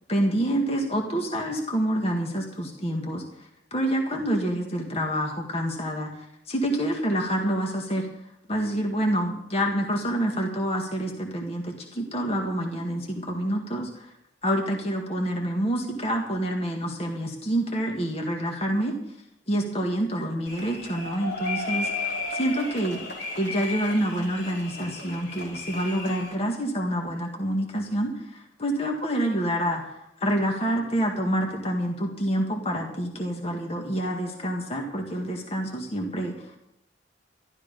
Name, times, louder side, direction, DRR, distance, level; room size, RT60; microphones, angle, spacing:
voice 1, 0.1-8.1 8.5-14.1 14.4-18.9 19.5-22.1 22.3-23.0 23.4-36.6, right 1 dB, 35° left, 1 dB, 1.8 m, -27 dB
sound 1, 20.5-26.3, left 3 dB, 65° left, 3.2 m, -34 dB
13.5 x 12.0 x 5.3 m, 0.79 s
head